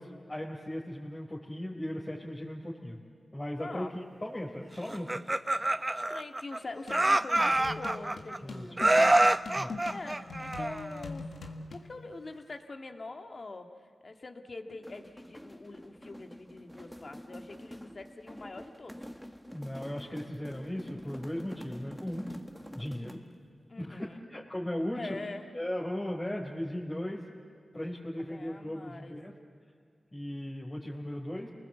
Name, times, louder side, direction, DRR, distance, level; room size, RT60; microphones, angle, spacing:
voice 1, 0.0-3.0 3.3-5.2 8.4-8.9 9.6-9.7 19.5-22.3 22.7-23.2 23.8-25.2 25.5-27.2 27.7-29.3 30.1-31.5, left 1 dB, 25° left, -4 dB, 4.0 m, -37 dB
voice 2, 3.6-3.9 5.9-9.3 9.6-11.3 11.7-19.1 23.7-24.2 24.9-25.5 28.2-29.2, left 3 dB, 55° left, 4 dB, 2.0 m, -44 dB
Laughter, 4.9-6.6 6.9-8.4 8.8-11.0, right 1 dB, 30° right, 0.7 m, -26 dB
sound 1, 6.9-11.9, left 3 dB, 85° left, 1.9 m, -42 dB
sound 2, 14.7-23.4, equal, 5° left, 1.6 m, -47 dB
29.0 x 19.5 x 8.1 m, 2.2 s
cardioid pair, 45°, 0 cm